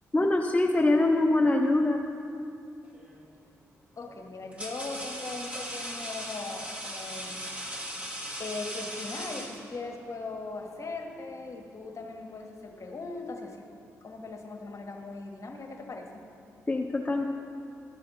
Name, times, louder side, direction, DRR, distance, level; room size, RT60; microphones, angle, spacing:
voice 1, 0.1-2.0 16.7-17.3, left 2 dB, 20° left, 1 dB, 0.7 m, -24 dB
sound 1, 2.9-3.3 4.1-10.0, equal, 20° right, 1.5 m, -38 dB
voice 2, 4.0-7.4 8.4-13.6 14.0-16.2, left 3 dB, 45° left, 3 dB, 1.3 m, -39 dB
12.5 x 5.7 x 5.4 m, 2.6 s
hypercardioid pair, 40°, 7 cm